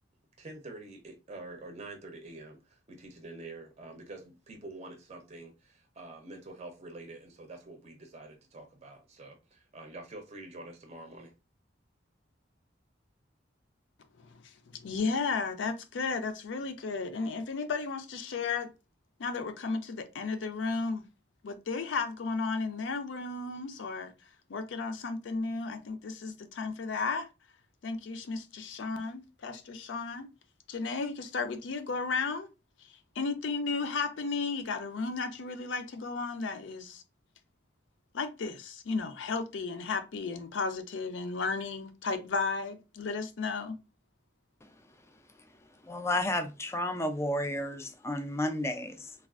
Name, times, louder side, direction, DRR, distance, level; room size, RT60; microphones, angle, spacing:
voice 1, 0.4-11.3, right 2 dB, 35° right, 0.5 m, -46 dB
voice 2, 14.4-18.7 19.2-21.0 21.4-24.1 24.5-27.3 27.8-30.3 30.7-32.5 33.2-37.0 38.1-43.8, left 4 dB, 80° left, 0.4 m, -34 dB
voice 3, 45.8-49.1, left 1 dB, 15° left, 0.3 m, -32 dB
3.3 x 2.3 x 2.4 m
head